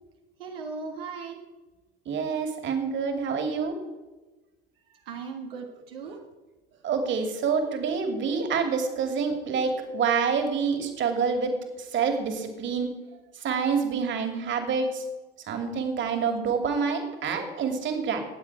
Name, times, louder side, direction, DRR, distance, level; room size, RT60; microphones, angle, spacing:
voice 1, 0.4-1.4 4.9-6.2, right 5 dB, 75° right, 1 dB, 1.7 m, -38 dB
voice 2, 2.1-3.8 6.0-6.1 6.8-12.9 13.4-15.0 15.5-18.2, right 5 dB, 40° right, 5 dB, 2.8 m, -27 dB
20.0 x 7.6 x 4.9 m, 1.2 s
hypercardioid pair, 85°, 30 cm